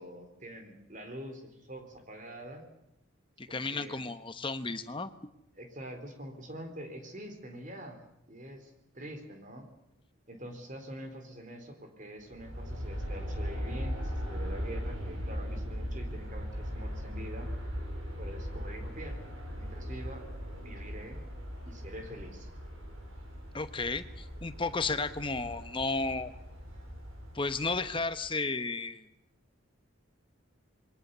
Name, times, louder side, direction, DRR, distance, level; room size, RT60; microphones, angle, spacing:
voice 1, 0.0-2.6 3.5-4.0 5.5-9.7 10.3-17.5 18.2-19.2 19.5-20.3 20.6-21.3 21.7-22.5, equal, 40° right, 6 dB, 3.9 m, -45 dB
voice 2, 3.4-5.1 23.5-26.3 27.3-29.0, left 3 dB, 25° left, 10 dB, 1.1 m, -33 dB
Aircraft, 12.2-28.3, equal, 85° right, 7.4 m, -39 dB
27.0 x 22.5 x 6.9 m, 0.79 s
head